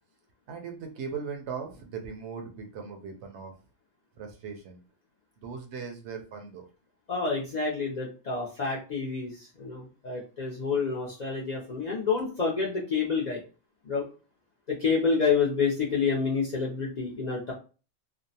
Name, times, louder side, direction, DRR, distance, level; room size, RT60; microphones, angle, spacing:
voice 1, 0.5-3.5 4.2-4.8 5.4-6.6, right 6 dB, 70° right, 4 dB, 0.8 m, -39 dB
voice 2, 7.1-13.4 13.9-14.0 14.7-17.5, left 5 dB, 55° left, -4 dB, 0.5 m, -28 dB
2.5 x 2.0 x 2.7 m, 0.35 s
omnidirectional pair, 1.3 m